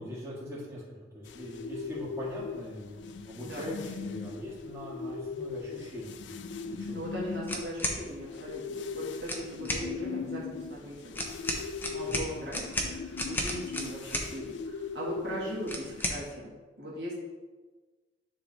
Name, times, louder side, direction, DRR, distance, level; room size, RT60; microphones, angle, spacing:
voice 1, 0.0-6.2 6.7-7.0 9.6-9.9 10.2-10.3 12.1-12.3, equal, 15° right, -8 dB, 2.0 m, -42 dB
sound 1, 1.2-16.0, left 4 dB, 75° left, 0.4 m, -39 dB
voice 2, 6.9-11.2 11.9-17.2, equal, 60° right, -5 dB, 1.7 m, -39 dB
sound 2, 7.5-8.0 9.2-9.9 11.1-14.3 15.7-16.2, left 1 dB, 10° left, 0.7 m, -33 dB
9.9 x 3.3 x 4.0 m, 1.3 s
head